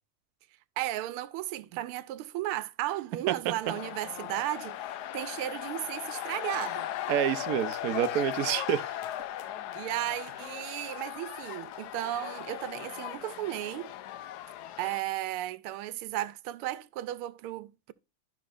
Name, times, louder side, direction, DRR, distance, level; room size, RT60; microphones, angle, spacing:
voice 1, 0.8-6.9 9.7-13.9 14.8-17.9, right 14 dB, 90° right, 1.5 m, -35 dB
sound 1, 3.6-15.0, left 12 dB, 85° left, 0.8 m, -38 dB
voice 2, 7.1-8.9, right 11 dB, 70° right, 0.8 m, -28 dB
12.0 x 6.0 x 2.5 m
omnidirectional pair, 2.3 m